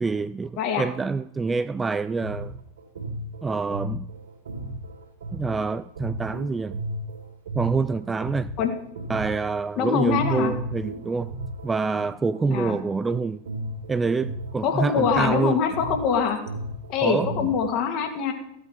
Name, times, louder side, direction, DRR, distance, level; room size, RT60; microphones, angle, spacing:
voice 1, 0.0-2.5 3.4-4.1 5.3-6.8 7.5-8.5 9.1-11.3 11.6-13.4 13.9-15.6 17.0-17.3, right 4 dB, 15° right, 0.3 m, -26 dB
voice 2, 0.6-0.9 8.6-8.7 9.8-10.5 12.5-12.8 14.6-16.4 16.9-18.3, left 6 dB, 40° left, 2.1 m, -24 dB
sound 1, 2.0-9.7 10.1-17.7, right 1 dB, 65° right, 2.9 m, -35 dB
15.0 x 8.5 x 4.6 m
figure-of-eight pair, 90°, 0 cm